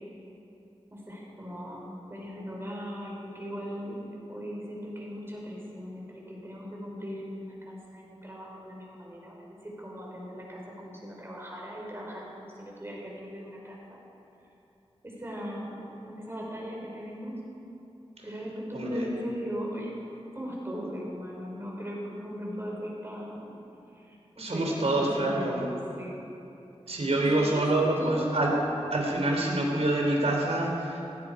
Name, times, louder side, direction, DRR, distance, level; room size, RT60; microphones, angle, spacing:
voice 1, 0.9-4.0 4.3-14.0 15.0-17.4 18.2-19.9 20.3-23.5 23.9-26.2 27.1-28.3, equal, 20° right, -3 dB, 4.5 m, -38 dB
voice 2, 18.7-19.0 24.4-25.7 26.9-28.5 28.9-31.0, right 1 dB, 75° right, -1 dB, 3.3 m, -26 dB
16.5 x 16.5 x 4.9 m, 2.8 s
wide cardioid pair, 85°, 11 cm